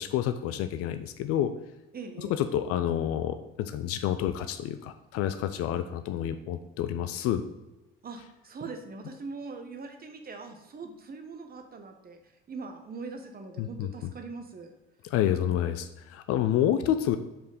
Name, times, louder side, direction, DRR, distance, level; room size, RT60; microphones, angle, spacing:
voice 1, 0.0-1.5 2.2-7.4 13.6-13.9 15.1-17.2, left 11 dB, 50° left, 10 dB, 0.5 m, -28 dB
voice 2, 1.9-2.4 8.0-14.7, right 4 dB, 30° right, 5 dB, 1.0 m, -42 dB
5.1 x 4.3 x 5.0 m, 1.0 s
figure-of-eight pair, 50°, 30 cm